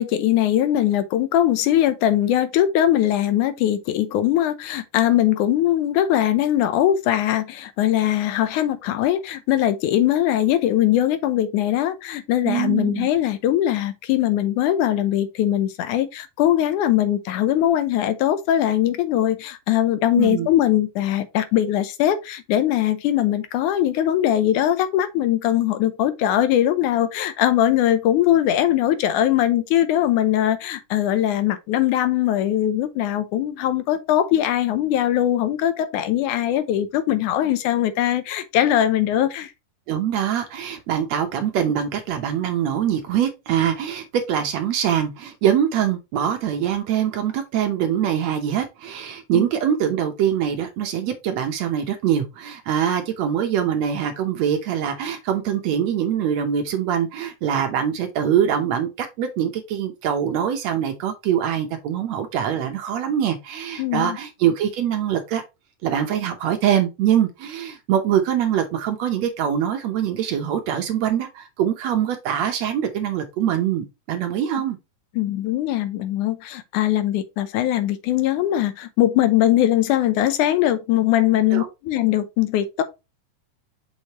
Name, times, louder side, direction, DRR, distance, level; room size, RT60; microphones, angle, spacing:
voice 1, 0.0-39.5 49.3-49.4 63.8-64.2 75.2-82.8, left 12 dB, 80° left, 2.2 m, -21 dB
voice 2, 12.4-13.1 20.1-20.5 39.9-65.4 65.8-74.8 81.5-81.7, right 9 dB, 70° right, 1.9 m, -23 dB
6.5 x 5.1 x 2.9 m
omnidirectional pair, 3.6 m